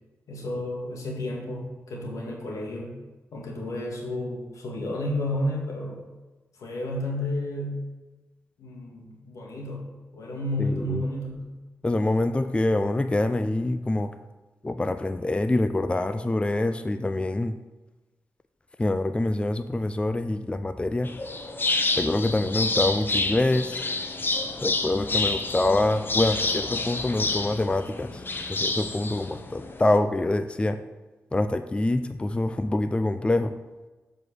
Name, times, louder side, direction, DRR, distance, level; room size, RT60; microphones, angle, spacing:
voice 1, 0.3-3.0 3.3-6.0 6.6-7.8 8.6-11.6, left 1 dB, 85° left, -1 dB, 1.9 m, -31 dB
voice 2, 10.6-11.0 11.8-14.1 14.6-17.5 18.8-21.1 22.0-23.8 24.6-28.2 28.5-30.8 31.3-33.5, left 2 dB, 20° left, 10 dB, 0.4 m, -25 dB
sound 1, 21.0-30.0, left 3 dB, 40° left, 0.9 m, -29 dB
7.3 x 4.9 x 6.3 m, 1.2 s
cardioid pair, 65°, 5 cm